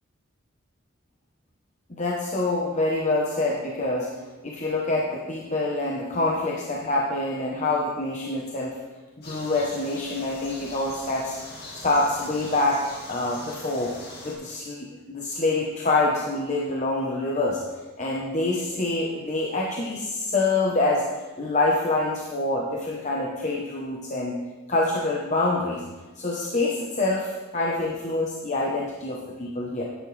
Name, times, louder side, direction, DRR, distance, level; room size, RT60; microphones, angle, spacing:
voice 1, 1.9-4.1 4.4-8.7 9.2-13.9 14.2-17.6 18.0-21.0 21.4-24.3 24.7-25.8 26.2-29.8, left 2 dB, 35° left, -3 dB, 1.0 m, -26 dB
sound 1, 9.2-14.3, left 1 dB, 55° left, 2.3 m, -42 dB
10.0 x 9.4 x 3.3 m, 1.2 s
head